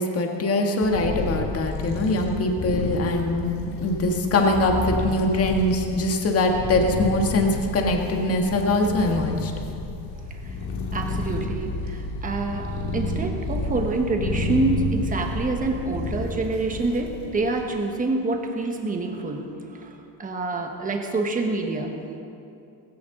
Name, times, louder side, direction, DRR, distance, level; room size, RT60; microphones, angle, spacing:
voice 1, 0.0-9.5, left 2 dB, 30° left, 2 dB, 1.7 m, -23 dB
sound 1, 0.8-17.7, left 2 dB, 55° left, 2.5 m, -30 dB
voice 2, 10.9-22.0, right 3 dB, 15° right, 3 dB, 1.4 m, -27 dB
18.5 x 16.5 x 3.9 m, 2.6 s
cardioid pair, 155°, 47 cm